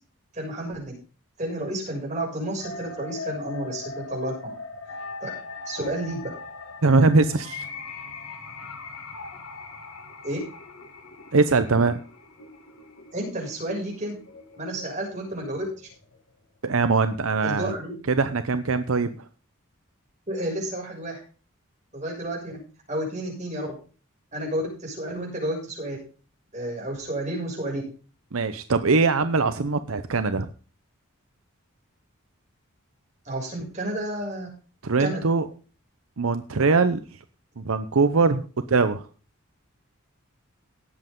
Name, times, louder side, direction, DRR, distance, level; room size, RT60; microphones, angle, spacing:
voice 1, 0.3-1.0 1.4-4.5 5.2-5.3 5.7-6.2 10.2-10.4 13.1-14.2 14.6-15.7 17.4-17.9 20.3-21.2 21.9-22.5 22.9-23.7 24.3-26.0 26.5-27.8 33.3-34.5 35.0-35.2, right 1 dB, 35° right, -2 dB, 6.8 m, -31 dB
sound 1, 2.6-16.6, left 4 dB, 80° left, 2.3 m, -40 dB
voice 2, 6.8-7.7 11.3-12.0 16.6-17.7 18.1-19.1 28.3-30.5 34.8-35.5 36.2-37.0 37.6-38.4 38.7-39.1, right 4 dB, 75° right, 10 dB, 0.8 m, -21 dB
18.0 x 7.9 x 3.8 m, 0.37 s
head